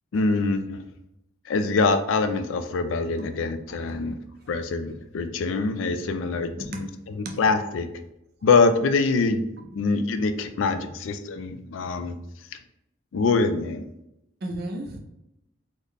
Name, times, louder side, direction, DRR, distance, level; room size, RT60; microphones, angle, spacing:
voice 1, 0.1-0.8 1.5-4.2 4.5-7.9 8.4-9.5 9.8-12.2 13.1-13.9, left 4 dB, 75° left, 9 dB, 0.3 m, -24 dB
voice 2, 14.4-15.0, right 1 dB, 50° right, 3 dB, 0.5 m, -33 dB
3.9 x 2.1 x 3.3 m, 0.85 s
head